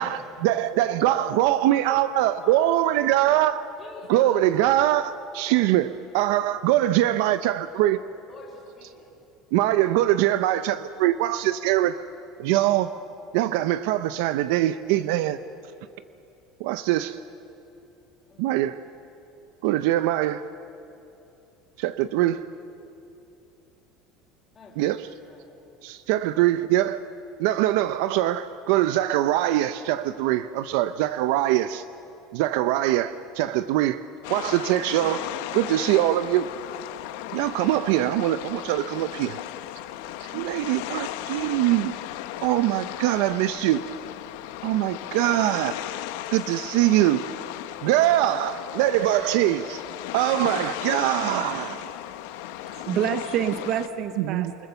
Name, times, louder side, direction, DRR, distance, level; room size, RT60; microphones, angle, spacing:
voice 1, 0.0-3.6 4.1-8.0 9.5-12.0 12.4-12.9 13.3-15.4 16.6-17.2 18.4-18.8 19.6-20.4 21.8-22.5 24.8-25.0 25.8-27.0 27.4-31.8 32.3-34.0 34.3-35.2 35.5-36.5 37.3-39.4 40.3-41.9 42.4-43.8 44.6-45.7 46.3-47.2 47.8-49.8 50.1-51.9 54.2-54.7, right 14 dB, 70° right, 0.5 m, -23 dB
voice 2, 0.9-1.9 2.3-2.7 3.8-4.6 8.2-9.2 18.3-18.5 24.5-25.5 37.3-37.5 39.9-40.3, left 2 dB, 20° left, 3.8 m, -45 dB
sound 1, 34.2-53.9, left 14 dB, 80° left, 0.9 m, -36 dB
voice 3, 52.6-54.7, right 9 dB, 45° right, 0.8 m, -27 dB
28.0 x 20.0 x 6.9 m
cardioid pair, 165°, 0 cm